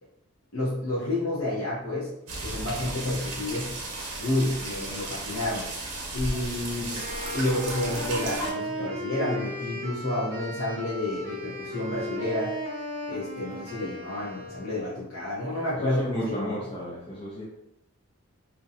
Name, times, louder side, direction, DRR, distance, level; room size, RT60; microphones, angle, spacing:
voice 1, 0.5-2.1 2.4-3.7 4.2-5.7 6.1-7.0 7.3-12.5 13.1-16.6, left 1 dB, 60° left, -9 dB, 0.7 m, -30 dB
sound 1, 2.3-8.5, right 2 dB, 85° right, 0.8 m, -34 dB
Wind instrument woodwind instrument, 6.9-15.0, equal, 50° right, 0.7 m, -36 dB
voice 2, 15.7-17.4, equal, 25° left, -7 dB, 0.5 m, -34 dB
2.6 x 2.1 x 2.6 m, 0.82 s
head